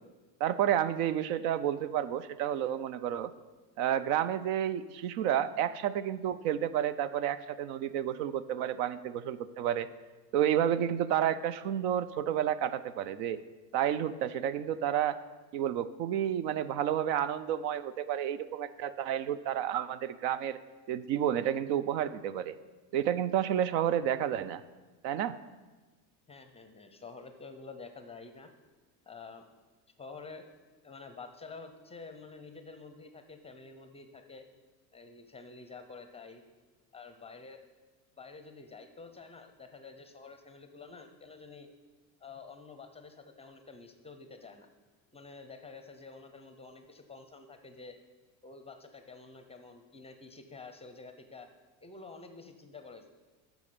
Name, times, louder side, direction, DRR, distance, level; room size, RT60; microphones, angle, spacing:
voice 1, 0.4-3.3 3.8-9.9 10.3-13.4 13.7-15.2 15.5-20.6 20.9-22.6 22.9-24.6 25.0-25.4, right 10 dB, 75° right, 15 dB, 0.6 m, -30 dB
voice 2, 26.3-28.5 29.1-29.5 30.0-30.4 30.8-34.5 34.9-36.4 36.9-37.6 38.2-41.7 42.2-44.7 45.1-48.0 48.4-51.5 51.8-53.1, left 4 dB, 15° left, 7 dB, 0.5 m, -49 dB
8.6 x 6.2 x 6.8 m, 1.3 s
cardioid pair, 130°, 48 cm